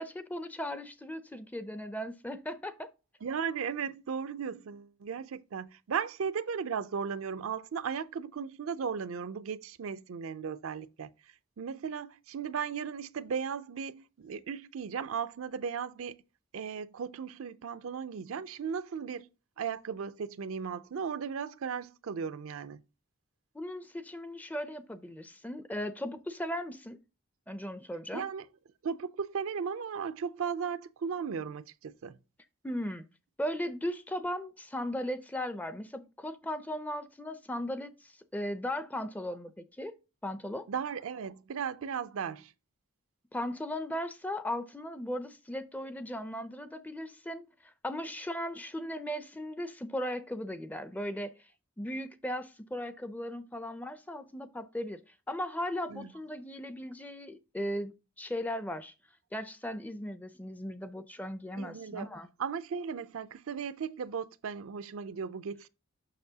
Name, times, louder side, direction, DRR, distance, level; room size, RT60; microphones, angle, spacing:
voice 1, 0.0-2.9 23.5-27.0 27.5-28.3 32.6-33.0 33.4-39.9 40.2-40.7 43.3-51.3 51.8-55.0 55.3-58.9 59.3-62.3, equal, 5° left, 0.4 m, -37 dB
voice 2, 3.2-11.1 11.6-16.2 16.5-19.3 19.6-22.8 28.1-28.5 28.8-32.2 40.7-42.5 55.9-56.1 61.6-62.1 62.4-65.7, right 6 dB, 70° right, 0.4 m, -36 dB
6.7 x 6.1 x 2.8 m
head